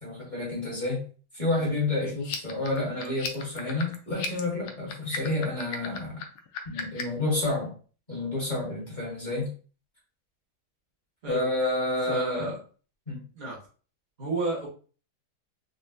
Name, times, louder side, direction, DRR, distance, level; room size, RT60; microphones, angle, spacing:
voice 1, 0.0-1.0 1.3-6.2 6.6-7.7 8.1-9.5 11.3-12.5 13.1-13.2, left 2 dB, 25° left, -5 dB, 1.1 m, -29 dB
sound 1, 2.2-7.2, left 7 dB, 90° left, 0.8 m, -37 dB
voice 2, 12.1-12.6 13.3-13.6 14.2-14.7, right 2 dB, 70° right, -4 dB, 0.4 m, -32 dB
4.0 x 2.1 x 2.5 m, 0.39 s
omnidirectional pair, 2.3 m